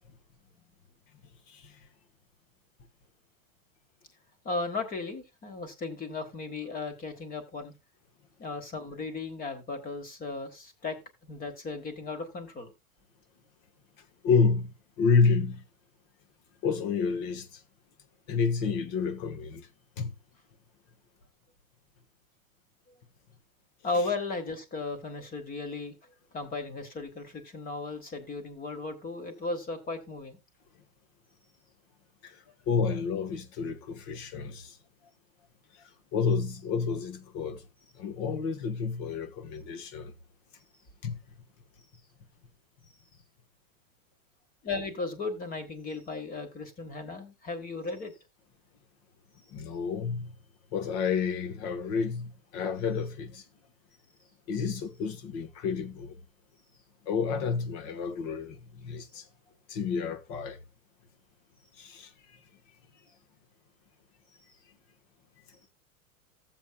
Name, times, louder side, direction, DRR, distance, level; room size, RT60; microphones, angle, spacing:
voice 1, 1.5-1.8 14.2-15.6 16.6-17.6 18.3-19.7 20.0-20.1 32.2-34.8 35.7-37.6 37.9-40.1 41.0-41.2 49.5-50.3 50.7-53.4 54.5-56.2 57.0-59.2 59.7-60.6 61.8-62.4, left 5 dB, 40° left, 1.2 m, -30 dB
voice 2, 4.4-7.7 8.4-11.0 11.2-12.7 23.8-25.9 26.3-30.4 44.6-48.1, left 3 dB, 20° left, 1.5 m, -35 dB
15.0 x 7.3 x 2.3 m
supercardioid pair, 140°, 43 cm